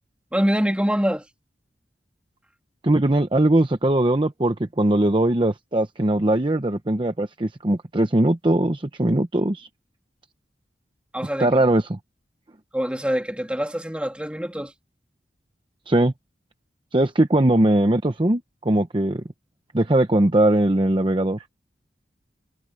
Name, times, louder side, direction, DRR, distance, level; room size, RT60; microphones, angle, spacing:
voice 1, 0.3-1.2 11.1-11.6 12.7-14.7, equal, 5° right, 2.9 m, -24 dB
voice 2, 2.8-9.7 11.4-12.0 15.9-16.1 16.9-19.2 19.7-21.4, right 1 dB, 30° right, 0.9 m, -20 dB
head